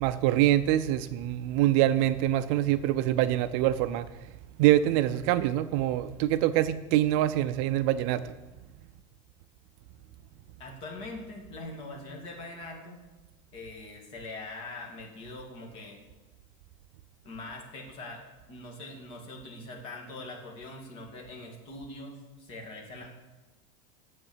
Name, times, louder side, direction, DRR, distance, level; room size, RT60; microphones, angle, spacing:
voice 1, 0.0-4.1 4.6-8.3, right 13 dB, 45° right, 13 dB, 0.4 m, -25 dB
voice 2, 10.6-13.0 13.5-16.0 17.2-18.2 18.5-23.1, left 2 dB, 35° left, 0 dB, 2.3 m, -42 dB
9.7 x 7.8 x 7.3 m, 1.1 s
supercardioid pair, 170°, 17 cm